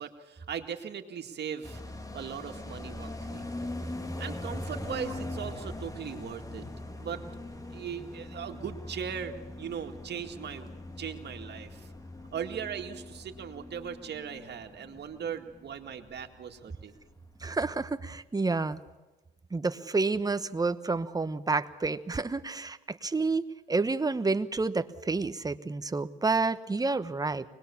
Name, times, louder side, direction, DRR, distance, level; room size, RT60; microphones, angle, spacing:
voice 1, 0.0-1.8 2.1-3.5 4.2-6.7 6.9-7.2 7.7-10.7 11.0-11.9 12.3-17.0, right 8 dB, 60° right, 5 dB, 2.2 m, -39 dB
sound 1, 1.6-16.7 17.0-17.1 17.4-18.0, left 1 dB, 15° left, 1.7 m, -41 dB
voice 2, 17.4-18.8 19.5-27.4, right 3 dB, 20° right, 12 dB, 1.1 m, -29 dB
24.5 x 20.5 x 7.2 m, 1.2 s
cardioid pair, 90°, 20 cm